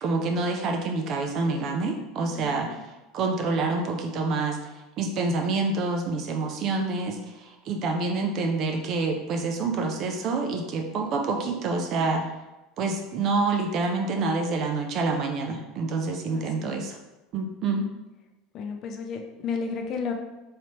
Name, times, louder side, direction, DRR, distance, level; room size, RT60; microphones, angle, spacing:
voice 1, 0.0-2.8 3.1-4.6 5.0-12.2 12.8-17.0 17.3-17.9, right 3 dB, 40° right, 3 dB, 0.4 m, -27 dB
voice 2, 2.4-2.8 16.3-16.8 18.5-20.1, left 5 dB, 35° left, 4 dB, 0.5 m, -33 dB
3.2 x 2.9 x 4.2 m, 1.0 s
supercardioid pair, 155°, 0 cm